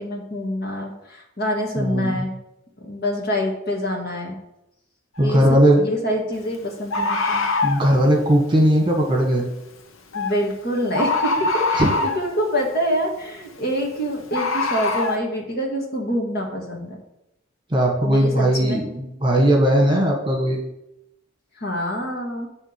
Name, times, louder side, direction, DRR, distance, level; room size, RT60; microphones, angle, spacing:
voice 1, 0.0-2.4 2.8-4.4 5.2-7.4 10.1-17.0 18.0-18.8 21.6-22.5, equal, 50° left, 0 dB, 1.8 m, -26 dB
voice 2, 1.8-2.2 5.2-5.8 7.6-9.4 11.7-11.9 17.7-20.6, right 1 dB, 25° right, 1 dB, 1.6 m, -18 dB
Bird, 5.2-5.3 6.9-7.9 10.1-10.4 10.9-12.3 14.3-15.2, left 3 dB, 80° left, 1.0 m, -23 dB
10.0 x 3.7 x 6.7 m, 0.84 s
head